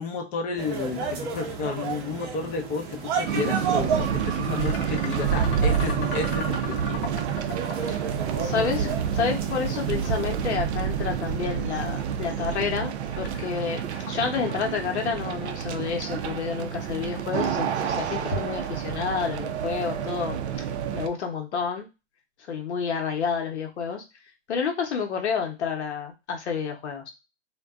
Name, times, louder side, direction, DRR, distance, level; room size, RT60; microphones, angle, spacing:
voice 1, 0.0-7.0, left 5 dB, 25° left, 2 dB, 0.4 m, -32 dB
sound 1, 0.6-10.5, right 5 dB, 30° right, 0.6 m, -33 dB
sound 2, 2.9-19.0, left 4 dB, 50° left, 0.9 m, -41 dB
sound 3, 3.2-21.1, right 8 dB, 75° right, 0.5 m, -29 dB
voice 2, 8.4-20.4 20.9-21.9 22.5-24.0 24.5-27.1, left 6 dB, 80° left, 2 dB, 0.8 m, -29 dB
2.5 x 2.2 x 2.3 m, 0.26 s
hypercardioid pair, 120°, 34 cm